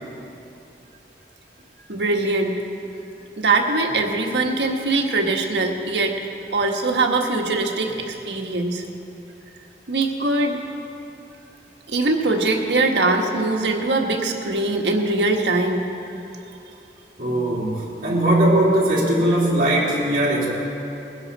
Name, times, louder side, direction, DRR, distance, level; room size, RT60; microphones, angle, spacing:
voice 1, 1.9-2.5 3.4-6.2 6.5-8.8 9.9-10.6 11.9-15.8, right 2 dB, 85° right, 2 dB, 1.4 m, -22 dB
voice 2, 17.2-20.5, right 1 dB, 50° right, -6 dB, 3.4 m, -19 dB
21.0 x 10.5 x 4.1 m, 2.8 s
head